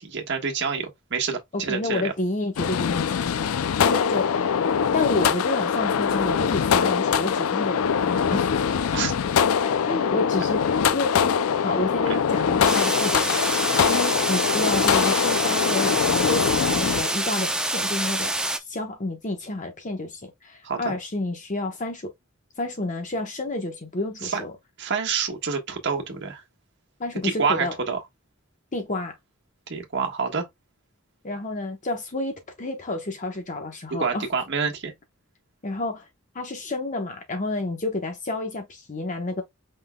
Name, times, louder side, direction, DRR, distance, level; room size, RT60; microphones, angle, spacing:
voice 1, 0.0-2.1 8.9-9.1 20.6-20.9 24.2-24.4 24.8-26.4 27.2-28.0 29.7-30.5 34.0-34.9, right 5 dB, 60° right, 1.4 m, -27 dB
voice 2, 1.5-3.4 3.8-4.5 4.9-8.6 9.8-13.3 13.9-18.3 18.7-22.1 22.6-24.5 27.0-27.7 28.7-29.2 31.2-34.3 35.6-36.1 36.3-39.4, left 2 dB, 35° left, 1.0 m, -30 dB
sound 1, 2.6-17.0, left 7 dB, 85° left, 0.4 m, -23 dB
sound 2, 12.6-18.6, right 1 dB, 5° right, 0.7 m, -26 dB
5.5 x 3.5 x 2.2 m
head